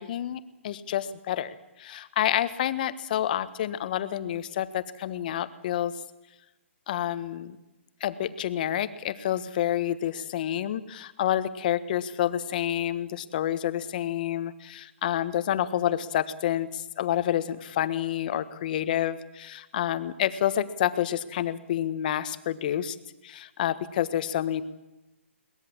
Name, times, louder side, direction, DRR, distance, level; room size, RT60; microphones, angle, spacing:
voice 1, 0.0-5.9 6.9-7.6 8.0-23.0 23.2-24.6, left 11 dB, 40° left, 13 dB, 1.3 m, -29 dB
22.5 x 20.0 x 7.3 m, 1.0 s
hypercardioid pair, 155°, 7 cm